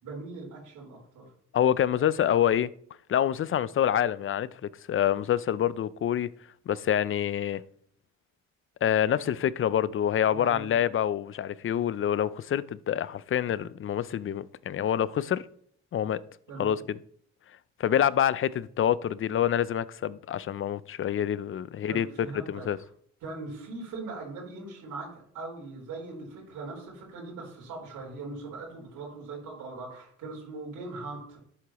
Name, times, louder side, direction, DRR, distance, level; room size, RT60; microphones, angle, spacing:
voice 1, 0.0-1.3 10.3-10.8 16.5-16.8 21.9-22.7 23.2-31.4, right 3 dB, 85° right, 4.1 m, -40 dB
voice 2, 1.5-2.7 3.1-6.3 6.7-7.6 8.8-15.4 15.9-16.2 16.6-17.0 17.8-22.8, left 10 dB, 45° left, 0.5 m, -26 dB
11.5 x 8.3 x 3.0 m
cardioid pair, 90°, 30 cm